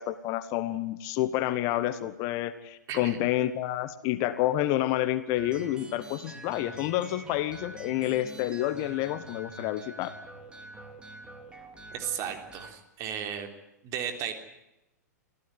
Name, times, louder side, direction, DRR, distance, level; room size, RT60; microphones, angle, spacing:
voice 1, 0.0-10.1, left 14 dB, 35° left, 13 dB, 1.4 m, -29 dB
sound 1, 5.4-12.7, right 2 dB, 10° right, 3.5 m, -46 dB
voice 2, 11.9-13.5 13.8-14.3, right 8 dB, 35° right, 6 dB, 3.5 m, -34 dB
25.5 x 15.5 x 9.5 m, 0.91 s
figure-of-eight pair, 100°, 9 cm